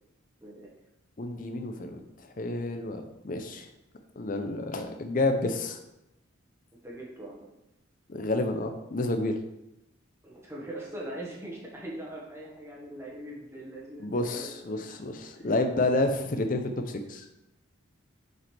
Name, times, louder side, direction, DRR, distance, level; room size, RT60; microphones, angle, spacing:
voice 1, 0.4-0.7 6.8-7.4 10.2-14.9 15.3-15.6, right 1 dB, 10° right, -4 dB, 1.4 m, -41 dB
voice 2, 1.2-2.0 2.4-3.7 4.2-5.8 8.1-9.4 14.0-17.2, left 2 dB, 40° left, 6 dB, 0.6 m, -29 dB
6.4 x 5.0 x 3.4 m, 0.87 s
head